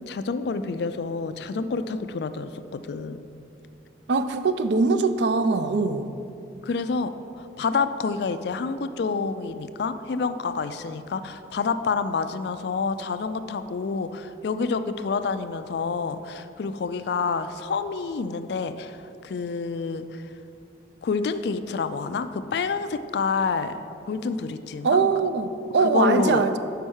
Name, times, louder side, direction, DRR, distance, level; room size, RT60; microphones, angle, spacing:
voice 1, 0.1-3.2 6.6-20.2 21.0-23.8 24.1-25.0 25.8-26.5, left 4 dB, 60° left, 11 dB, 0.3 m, -28 dB
voice 2, 4.1-6.1 24.8-26.6, right 4 dB, 65° right, 10 dB, 0.4 m, -22 dB
5.7 x 5.4 x 6.3 m, 2.6 s
head